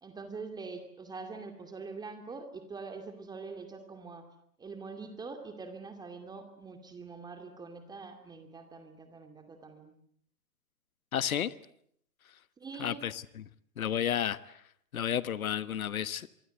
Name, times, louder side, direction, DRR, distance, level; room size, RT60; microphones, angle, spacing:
voice 1, 0.0-4.2 4.6-9.9 12.6-13.0, right 4 dB, 10° right, 2.4 m, -44 dB
voice 2, 11.1-11.5 12.8-13.4 13.8-14.4 14.9-16.3, left 9 dB, 60° left, 1.3 m, -31 dB
27.0 x 24.0 x 8.0 m
figure-of-eight pair, 130°, 47 cm